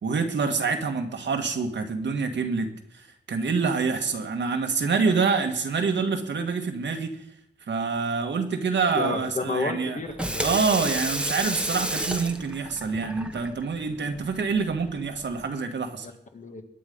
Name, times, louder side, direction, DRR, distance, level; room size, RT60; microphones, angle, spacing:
voice 1, 0.0-2.7 2.9-7.2 7.7-10.0 10.4-16.1, right 5 dB, 85° right, 4 dB, 2.0 m, -26 dB
voice 2, 9.0-10.6 16.0-16.6, left 3 dB, 45° left, 5 dB, 1.9 m, -31 dB
Water tap faucet / Sink (filling or washing), 10.0-15.5, right 1 dB, 5° right, 1.2 m, -32 dB
21.5 x 9.6 x 5.4 m, 0.74 s
wide cardioid pair, 150°, 18 cm